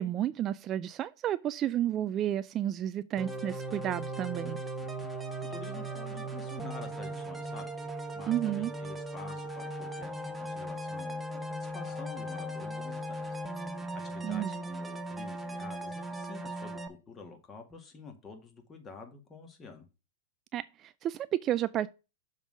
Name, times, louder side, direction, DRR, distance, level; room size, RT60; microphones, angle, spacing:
voice 1, 0.0-4.6 8.3-8.7 14.2-14.6 20.5-21.9, right 11 dB, 30° right, 0.3 m, -31 dB
sound 1, 3.2-16.9, right 1 dB, 10° right, 1.0 m, -38 dB
voice 2, 5.4-7.7 8.1-13.4 14.0-19.9, left 4 dB, 20° left, 2.0 m, -48 dB
6.9 x 3.9 x 6.2 m
hypercardioid pair, 120°, 0 cm